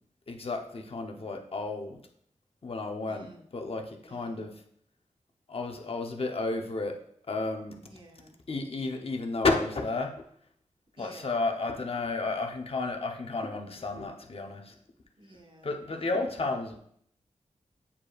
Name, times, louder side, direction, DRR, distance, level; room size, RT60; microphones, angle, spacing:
voice 1, 0.3-2.0 2.6-4.5 5.5-6.9 7.3-7.8 8.5-10.1 11.0-14.7 15.6-16.8, left 3 dB, 50° left, 3 dB, 0.8 m, -32 dB
voice 2, 3.1-3.5 4.1-4.5 7.8-8.4 11.0-11.2 15.2-16.1, right 1 dB, 40° right, 2 dB, 1.2 m, -53 dB
8.3 x 5.0 x 2.4 m, 0.67 s
wide cardioid pair, 70°, 12 cm